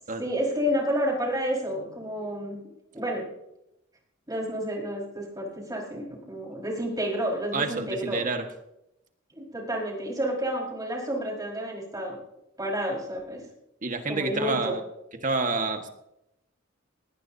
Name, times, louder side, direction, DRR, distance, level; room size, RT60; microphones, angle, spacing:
voice 1, 0.2-2.6 2.9-3.3 4.3-8.2 9.4-12.2 12.6-13.4 14.1-14.7, equal, 20° right, -2 dB, 4.9 m, -30 dB
voice 2, 7.5-8.5 13.8-14.8 15.2-15.9, right 3 dB, 40° right, 5 dB, 1.6 m, -28 dB
19.5 x 18.5 x 2.8 m, 0.85 s
head